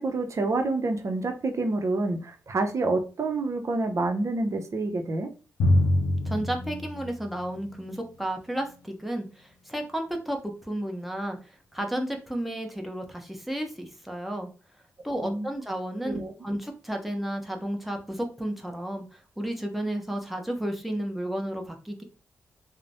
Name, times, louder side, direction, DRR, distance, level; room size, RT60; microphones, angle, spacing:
voice 1, 0.0-5.3 15.2-15.5 16.0-16.3, right 2 dB, 55° right, 5 dB, 0.6 m, -28 dB
Drum, 5.6-8.0, left 1 dB, 90° left, 0.5 m, -25 dB
voice 2, 6.2-14.5 15.0-22.0, right 1 dB, ahead, 3 dB, 0.8 m, -32 dB
3.1 x 2.0 x 2.6 m, 0.34 s
supercardioid pair, 45°, 6 cm